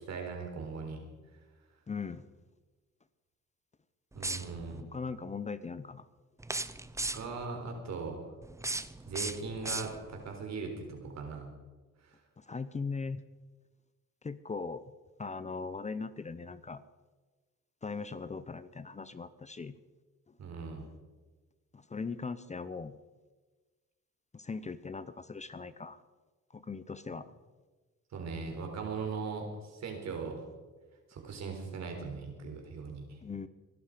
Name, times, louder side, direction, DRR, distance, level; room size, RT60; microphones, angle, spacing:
voice 1, 0.1-1.0 4.1-4.8 7.1-8.2 9.1-11.5 12.0-12.1 20.4-20.9 28.1-30.4 31.1-33.2, right 4 dB, 60° right, 3 dB, 4.2 m, -39 dB
voice 2, 1.9-2.2 4.9-6.1 12.4-13.2 14.2-14.8 15.2-16.8 17.8-19.8 20.3-20.4 21.7-23.0 24.3-26.0 26.5-27.3 33.2-33.5, left 4 dB, 25° left, 14 dB, 0.7 m, -39 dB
sound 1, 4.1-4.8 6.4-7.5 8.4-10.3, right 2 dB, 10° right, 0.7 m, -37 dB
23.0 x 11.5 x 5.0 m, 1.3 s
cardioid pair, 90°, 30 cm